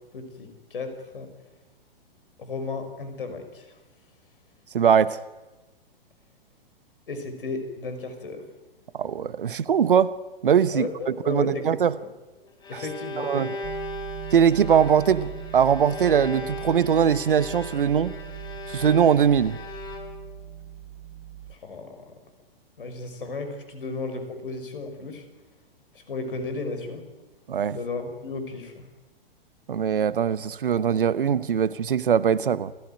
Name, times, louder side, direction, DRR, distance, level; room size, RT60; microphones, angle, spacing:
voice 1, 0.1-1.3 2.4-3.8 7.1-8.5 10.7-11.7 11.9-12.1 12.7-13.4 21.5-22.1 22.8-25.2 26.1-27.0 27.7-28.9, left 3 dB, 65° left, 5.7 m, -34 dB
voice 2, 4.7-5.2 8.9-10.1 10.4-10.9 11.3-12.0 12.7-12.8 13.2-13.5 14.3-18.1 18.7-19.6 27.5-27.8 29.7-32.7, right 8 dB, 65° right, 1.1 m, -21 dB
Bowed string instrument, 12.3-20.4, left 2 dB, 15° left, 4.5 m, -38 dB
sound 1, 13.6-21.6, right 12 dB, 40° right, 1.1 m, -40 dB
sound 2, 14.4-20.0, right 4 dB, 20° right, 4.7 m, -51 dB
28.5 x 15.5 x 9.4 m
figure-of-eight pair, 110°, 29 cm